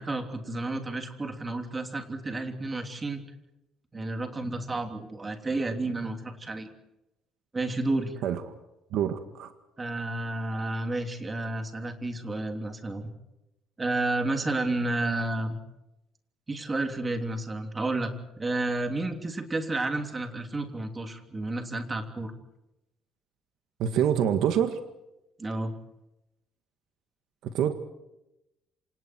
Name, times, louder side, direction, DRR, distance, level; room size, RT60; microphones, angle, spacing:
voice 1, 0.0-3.2 3.9-6.7 7.5-8.2 9.8-13.1 13.8-15.6 16.5-22.3 25.4-25.7, right 2 dB, 15° right, 5 dB, 3.1 m, -31 dB
voice 2, 8.9-9.5 23.8-24.8 27.4-27.7, right 9 dB, 65° right, 7 dB, 1.9 m, -26 dB
28.0 x 26.5 x 4.6 m, 0.90 s
cardioid pair, 150°, 0 cm